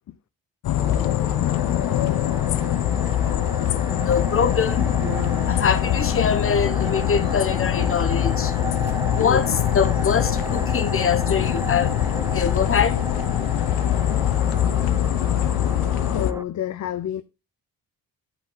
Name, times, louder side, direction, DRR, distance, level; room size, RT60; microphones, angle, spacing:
sound 1, 0.6-16.3, left 12 dB, 90° left, 0.7 m, -23 dB
sound 2, 0.8-16.4, right 3 dB, 10° right, 0.3 m, -34 dB
voice 1, 3.9-4.9 5.5-8.7 9.1-13.0, left 6 dB, 35° left, 1.2 m, -24 dB
sound 3, 5.0-6.1 7.1-7.6 8.1-8.2 8.5-9.0 9.2-9.4 9.9-10.6, right 3 dB, 45° right, 1.9 m, -39 dB
voice 2, 16.1-17.2, left 11 dB, 50° left, 0.6 m, -29 dB
10.5 x 5.5 x 3.9 m
cardioid pair, 135°, 36 cm